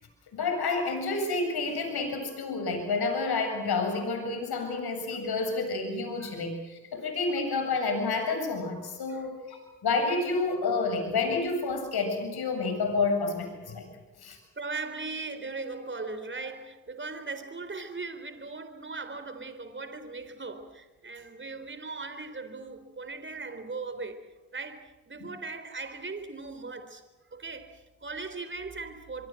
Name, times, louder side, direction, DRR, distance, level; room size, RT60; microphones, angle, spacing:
voice 1, 0.3-9.6 9.8-13.9 14.2-14.4, left 3 dB, 65° left, 7.7 m, -29 dB
voice 2, 14.3-27.0 27.3-29.3, right 3 dB, 25° right, 3.9 m, -39 dB
24.0 x 24.0 x 7.8 m
supercardioid pair, 55°, 41 cm